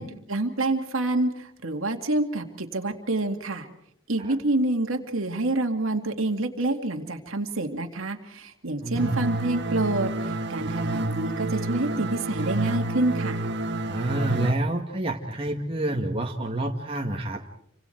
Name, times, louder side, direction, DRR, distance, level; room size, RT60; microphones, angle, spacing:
voice 1, 0.0-3.7 4.1-13.5, right 2 dB, 80° right, 4 dB, 2.4 m, -27 dB
voice 2, 8.8-9.1 13.8-17.4, right 1 dB, 25° right, 0 dB, 1.9 m, -28 dB
sound 1, 9.0-14.5, right 2 dB, 55° right, 1.6 m, -29 dB
29.5 x 25.5 x 4.6 m, 0.73 s
head